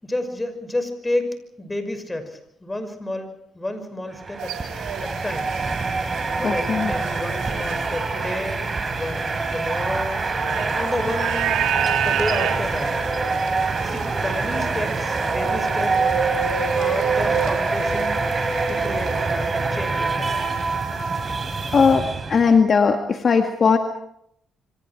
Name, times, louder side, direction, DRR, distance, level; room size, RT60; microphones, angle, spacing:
voice 1, 0.0-4.5 5.0-5.5 6.3-10.3 10.7-11.6 12.0-13.0 13.8-16.1 16.8-18.3 18.7-20.5, left 1 dB, 15° left, 8 dB, 5.9 m, -30 dB
sound 1, 4.1-22.6, right 3 dB, 30° right, 4.5 m, -25 dB
sound 2, 4.4-19.7 20.0-21.9, right 8 dB, 90° right, 3.3 m, -30 dB
voice 2, 6.4-6.9 21.7-23.8, left 5 dB, 45° left, 4 dB, 2.0 m, -18 dB
27.5 x 25.5 x 4.7 m, 0.72 s
cardioid pair, 90°, 0 cm